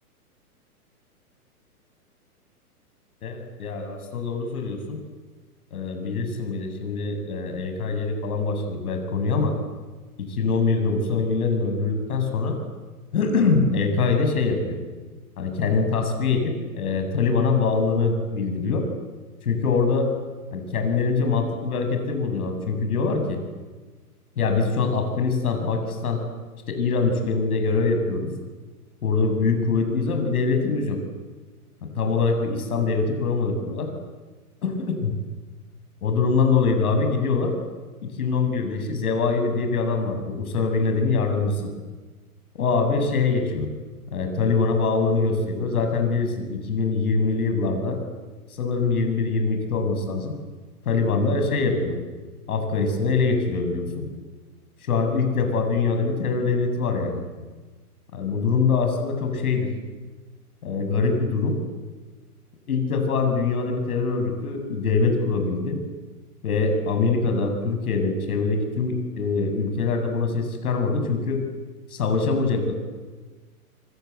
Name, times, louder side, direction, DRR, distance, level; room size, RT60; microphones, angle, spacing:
voice 1, 3.2-5.0 5.7-9.5 10.2-12.6 13.1-14.8 15.4-18.8 19.4-20.1 20.5-23.4 24.4-26.2 26.7-28.3 29.0-31.0 31.8-33.9 34.6-35.1 36.0-37.5 38.0-41.7 42.5-43.7 44.1-48.0 48.6-50.3 50.8-52.0 52.5-54.1 54.8-57.2 58.1-59.7 60.6-61.6 62.7-65.8 66.4-71.4 71.9-72.7, left 4 dB, 70° left, 5 dB, 7.6 m, -23 dB
26.5 x 26.0 x 8.2 m, 1.3 s
hypercardioid pair, 125°, 46 cm